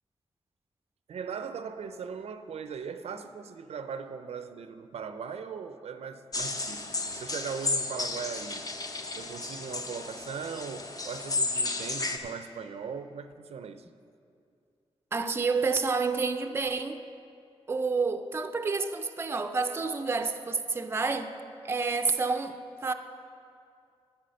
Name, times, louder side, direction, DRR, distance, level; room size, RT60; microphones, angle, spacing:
voice 1, 1.1-8.6 9.1-13.9, right 6 dB, 75° right, 0.5 m, -39 dB
sound 1, 6.3-12.2, left 3 dB, 35° left, 0.7 m, -33 dB
voice 2, 15.1-17.0 17.7-21.3 21.6-22.6 22.8-22.9, right 4 dB, 20° right, 0.4 m, -29 dB
11.0 x 7.0 x 6.4 m
wide cardioid pair, 135°, 11 cm